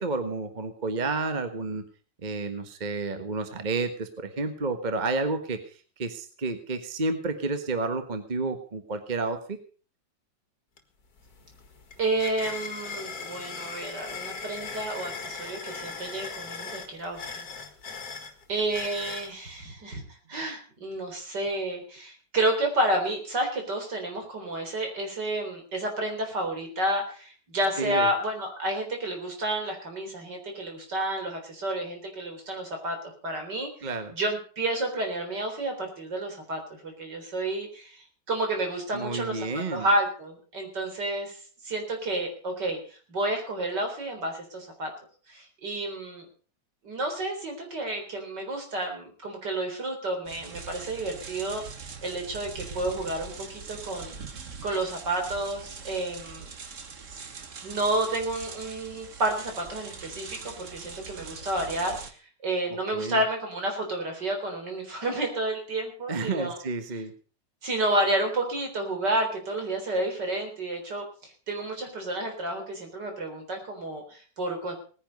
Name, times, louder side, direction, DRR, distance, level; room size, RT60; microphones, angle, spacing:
voice 1, 0.0-1.8 2.2-9.6 27.8-28.1 33.8-34.1 38.9-39.9 62.9-63.2 66.1-67.1, right 3 dB, 25° right, 8 dB, 1.4 m, -30 dB
sound 1, 10.8-10.9 11.2-19.3, left 5 dB, 55° left, 2.2 m, -39 dB
voice 2, 12.0-17.5 18.5-20.0 20.3-33.0 33.2-44.9 45.3-46.3 46.8-54.2 54.6-56.5 57.6-66.6 67.6-74.7, right 1 dB, 65° right, 4 dB, 4.5 m, -30 dB
sound 2, 50.3-62.1, right 5 dB, 45° right, 1.6 m, -42 dB
19.0 x 10.0 x 5.3 m, 0.41 s
omnidirectional pair, 2.0 m